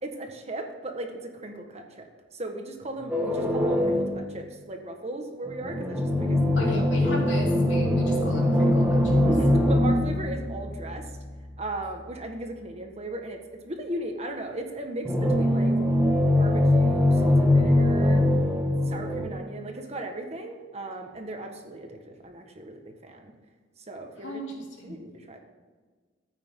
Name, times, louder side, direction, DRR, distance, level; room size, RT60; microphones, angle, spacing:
voice 1, 0.0-6.7 9.2-11.1 11.6-15.8 16.4-18.2 18.9-23.3 23.8-24.4 24.8-25.4, right 1 dB, 35° right, 3 dB, 1.5 m, -37 dB
sound 1, 3.1-4.3 5.5-11.6 15.0-19.3, left 1 dB, 10° right, 1.5 m, -22 dB
voice 2, 6.5-9.2 24.2-25.0, equal, 70° left, -2 dB, 3.4 m, -36 dB
13.5 x 9.3 x 3.8 m, 1.4 s
head